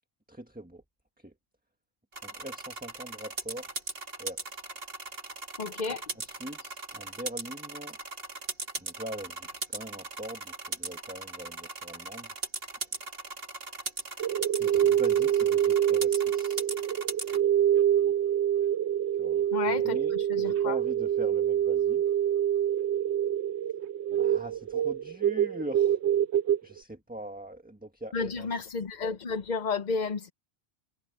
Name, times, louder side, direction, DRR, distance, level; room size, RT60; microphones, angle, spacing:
voice 1, 0.3-0.8 1.2-1.3 2.2-3.7 4.2-4.6 5.9-8.0 8.8-12.3 14.6-16.6 19.2-20.1 20.4-22.0 24.2-26.0 26.6-28.7, right 1 dB, 10° right, 1.5 m, -42 dB
sound 1, 2.1-17.4, right 3 dB, 60° right, 2.7 m, -39 dB
voice 2, 5.6-6.0 19.5-20.8 28.1-30.3, left 4 dB, 45° left, 0.8 m, -32 dB
sound 2, 14.2-26.6, right 10 dB, 85° right, 1.0 m, -26 dB
omnidirectional pair, 1.1 m